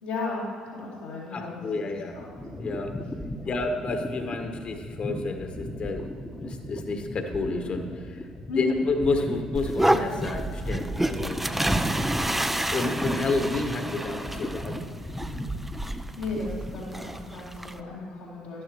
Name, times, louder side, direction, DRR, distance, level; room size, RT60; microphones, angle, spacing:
voice 1, 0.0-1.7 2.1-2.3 3.4-3.5 8.5-8.8 16.2-18.6, left 3 dB, 90° left, -12 dB, 2.5 m, -34 dB
voice 2, 1.3-2.2 2.6-3.0 3.4-6.1 6.4-8.3 8.5-11.4 12.4-15.1, left 3 dB, 45° left, 5 dB, 1.4 m, -30 dB
sound 1, 1.7-17.2, left 1 dB, 15° left, 1.0 m, -38 dB
sound 2, 9.5-17.8, right 1 dB, 10° right, 0.6 m, -29 dB
12.5 x 11.5 x 3.1 m, 2.2 s
hypercardioid pair, 55°, 2 cm